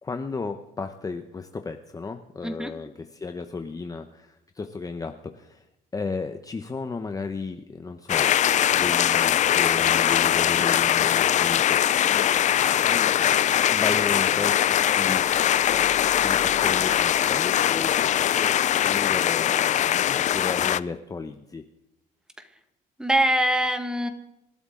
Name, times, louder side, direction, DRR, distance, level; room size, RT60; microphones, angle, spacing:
voice 1, 0.0-5.6 5.9-8.3 8.7-11.8 12.0-12.3 12.9-18.0 18.4-18.5 18.8-21.6, left 4 dB, 20° left, 6 dB, 0.9 m, -34 dB
sound 1, 8.1-20.8, left 10 dB, 45° left, 0.5 m, -21 dB
voice 2, 23.0-24.1, right 1 dB, 5° right, 7 dB, 1.8 m, -23 dB
27.0 x 12.5 x 3.8 m, 0.87 s
cardioid pair, 110°, 17 cm